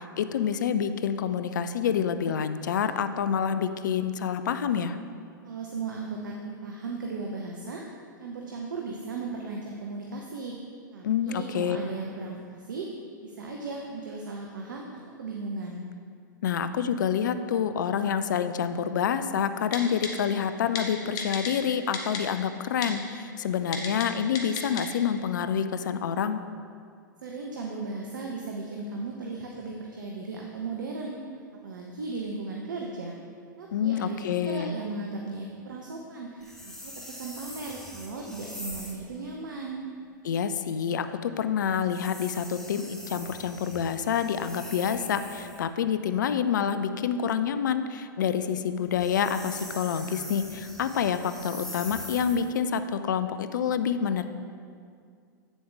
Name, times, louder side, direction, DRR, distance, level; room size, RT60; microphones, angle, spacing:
voice 1, 0.0-5.0 11.0-11.8 16.4-26.4 33.7-34.7 40.2-54.3, left 7 dB, 65° left, 10 dB, 0.5 m, -27 dB
voice 2, 5.4-7.8 8.2-10.6 10.9-12.9 13.2-15.8 27.2-31.2 31.6-33.2 33.6-39.9, right 3 dB, 70° right, 0 dB, 0.8 m, -36 dB
Typing, 19.7-20.1 20.8-20.9 21.2-21.5 21.9-22.2 22.8-22.9 23.7-24.1 24.4-24.8 25.2-25.3, left 6 dB, 35° left, 1.0 m, -32 dB
sound 1, 36.4-39.1 41.8-45.7 48.9-52.5, left 1 dB, 5° left, 1.1 m, -43 dB
8.5 x 7.1 x 3.4 m, 2.2 s
figure-of-eight pair, 95°, 11 cm